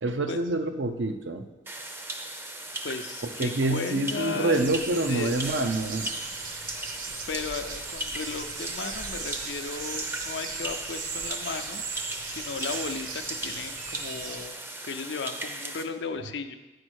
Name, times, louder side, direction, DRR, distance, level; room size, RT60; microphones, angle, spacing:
voice 1, 0.0-1.5 3.4-6.1, right 2 dB, 80° right, 7 dB, 0.7 m, -27 dB
sound 1, 1.7-15.8, right 1 dB, 10° right, 0.5 m, -37 dB
voice 2, 2.8-4.7 5.1-5.3 7.1-11.8 12.3-16.5, left 4 dB, 75° left, 7 dB, 0.6 m, -35 dB
sound 2, 4.5-14.5, right 5 dB, 50° right, 0.8 m, -38 dB
8.7 x 4.9 x 6.3 m, 1.1 s
head